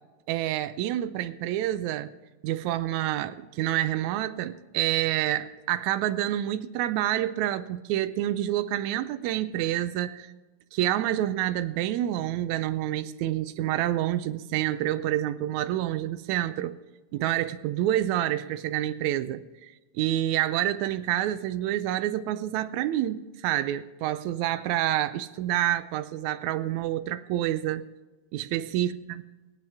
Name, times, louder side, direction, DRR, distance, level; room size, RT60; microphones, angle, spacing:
voice 1, 0.3-2.1 2.4-10.3 10.7-16.8 17.1-27.9 28.3-29.2, right 13 dB, 85° right, 1.9 m, -28 dB
24.0 x 9.3 x 3.5 m
omnidirectional pair, 3.3 m